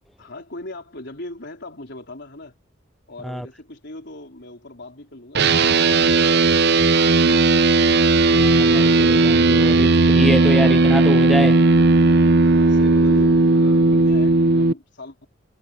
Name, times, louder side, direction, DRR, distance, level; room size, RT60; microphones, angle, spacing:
voice 1, 0.2-2.5 3.1-7.7 12.4-15.3, left 2 dB, 55° left, 4.4 m, -40 dB
sound 1, 5.3-14.7, right 3 dB, 50° right, 0.8 m, -16 dB
voice 2, 8.3-11.6, equal, ahead, 0.4 m, -26 dB
head